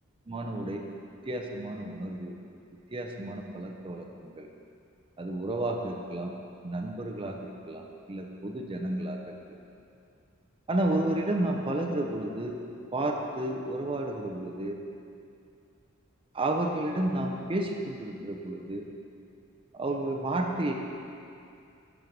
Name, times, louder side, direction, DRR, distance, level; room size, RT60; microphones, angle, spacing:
voice 1, 0.3-0.8 1.3-2.3 2.9-4.5 5.2-6.3 6.6-9.6 10.7-12.6 12.9-14.8 16.3-18.9 19.7-20.7, right 1 dB, 25° right, 1 dB, 0.6 m, -31 dB
12.0 x 4.6 x 5.2 m, 2.5 s
head